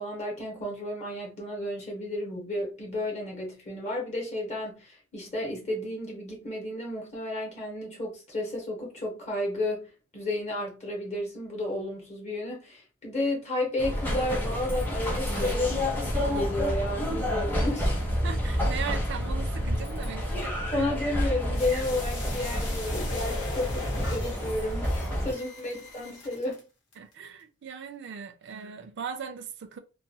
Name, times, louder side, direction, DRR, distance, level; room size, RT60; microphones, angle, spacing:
voice 1, 0.0-17.9 20.3-26.6, left 1 dB, 35° left, 0.9 m, -32 dB
sound 1, 13.8-25.3, equal, 10° left, 0.7 m, -29 dB
voice 2, 18.2-20.9 25.1-25.2 27.0-29.8, right 7 dB, 60° right, 0.4 m, -39 dB
sound 2, 21.5-26.6 26.9-27.0, left 2 dB, 70° left, 1.0 m, -38 dB
2.4 x 2.1 x 2.7 m
head